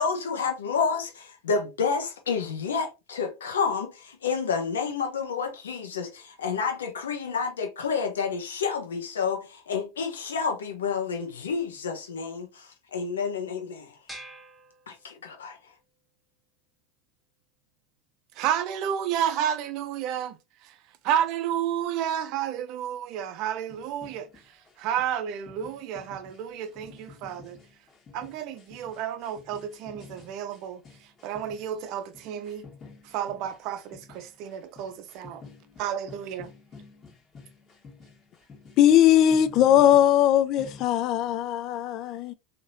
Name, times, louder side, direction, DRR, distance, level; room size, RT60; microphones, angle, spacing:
voice 1, 0.0-14.0 14.9-15.6, left 5 dB, 90° left, 0.8 m, -29 dB
sound 1, 14.1-15.6, right 1 dB, 5° right, 0.9 m, -46 dB
voice 2, 18.4-20.4 21.0-24.3 24.8-27.6 28.1-30.8 31.2-32.7 33.1-35.4 35.8-36.5, right 10 dB, 60° right, 0.5 m, -31 dB
sound 2, 23.4-40.9, left 4 dB, 35° left, 1.4 m, -50 dB
voice 3, 38.8-42.3, left 11 dB, 50° left, 0.3 m, -20 dB
3.1 x 2.8 x 2.7 m
hypercardioid pair, 95°, 0 cm